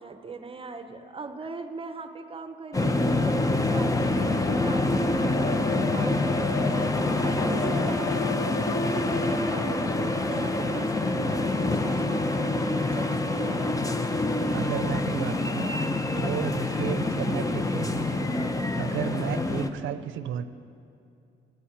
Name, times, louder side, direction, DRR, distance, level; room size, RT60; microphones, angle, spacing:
voice 1, 0.0-6.9 7.2-8.4 8.9-13.8, right 3 dB, 25° right, 8 dB, 0.8 m, -39 dB
sound 1, 2.7-19.7, left 2 dB, 15° left, 0.7 m, -26 dB
voice 2, 14.5-15.7 16.2-18.3 18.8-20.4, right 10 dB, 80° right, 13 dB, 0.6 m, -33 dB
13.5 x 8.4 x 7.4 m, 2.6 s
cardioid pair, 90°, 20 cm